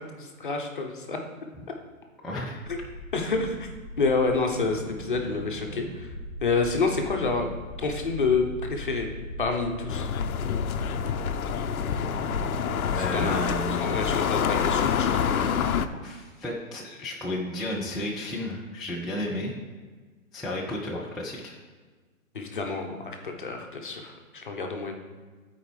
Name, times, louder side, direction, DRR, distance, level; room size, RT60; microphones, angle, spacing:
voice 1, 0.2-1.2 2.7-2.8 3.1-3.7 4.0-6.1 6.4-7.5 7.8-9.1 9.4-10.1 12.9-13.5 13.8-15.8 22.3-24.9, left 4 dB, 35° left, 3 dB, 0.7 m, -28 dB
voice 2, 2.2-2.6 3.2-3.3 13.0-14.0 15.9-19.5 20.3-21.5, left 1 dB, ahead, -6 dB, 0.3 m, -33 dB
sound 1, 2.6-13.6, right 1 dB, 15° right, 1.6 m, -39 dB
sound 2, 9.9-15.9, left 7 dB, 80° left, 0.6 m, -27 dB
12.5 x 4.5 x 3.2 m, 1.4 s
hypercardioid pair, 175°, 42 cm